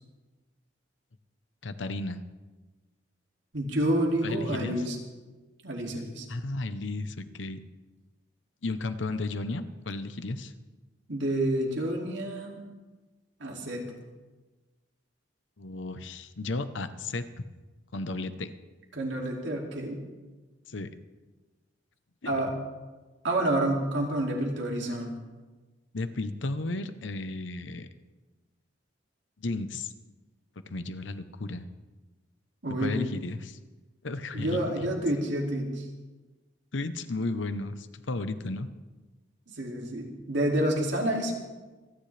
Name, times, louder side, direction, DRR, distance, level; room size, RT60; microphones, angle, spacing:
voice 1, 1.6-2.2 4.2-4.8 6.3-7.6 8.6-10.5 15.6-17.4 17.9-18.5 20.7-20.9 22.2-22.4 25.9-27.9 29.4-29.9 30.7-31.7 32.8-33.6 34.0-34.7 36.7-38.7, left 2 dB, 80° left, 11 dB, 0.8 m, -34 dB
voice 2, 3.5-5.0 5.6-6.3 11.1-12.6 13.4-13.8 18.9-20.0 22.3-22.5 23.2-25.1 32.6-33.0 34.3-35.9 39.5-41.3, right 1 dB, 75° right, 0 dB, 2.6 m, -29 dB
26.0 x 10.5 x 3.4 m, 1.2 s
head